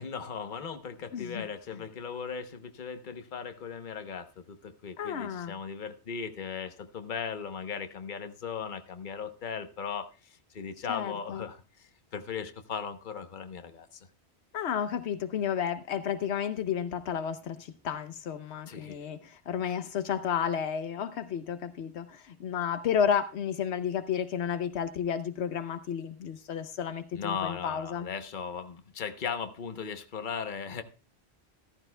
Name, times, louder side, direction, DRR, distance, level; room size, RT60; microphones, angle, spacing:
voice 1, 0.0-14.0 18.7-19.0 27.1-30.8, left 6 dB, 50° left, 8 dB, 1.0 m, -38 dB
voice 2, 1.1-1.4 5.0-5.5 10.9-11.5 14.5-28.1, left 8 dB, 80° left, 11 dB, 1.0 m, -32 dB
14.0 x 14.0 x 2.2 m, 0.30 s
omnidirectional pair, 1.1 m